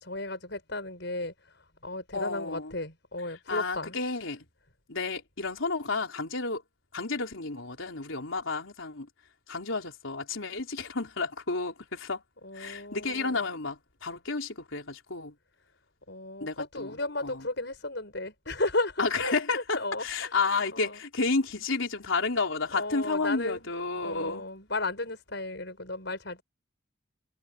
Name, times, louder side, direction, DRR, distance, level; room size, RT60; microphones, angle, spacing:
voice 1, 0.0-4.0 12.4-13.4 16.1-20.3 20.7-21.0 22.7-23.7 24.0-26.4, left 2 dB, 60° left, 6.5 m, -34 dB
voice 2, 2.1-2.8 3.5-4.5 4.9-6.6 6.9-9.1 9.5-12.2 12.5-15.3 16.4-17.4 19.0-24.4, left 3 dB, 80° left, 3.7 m, -31 dB
head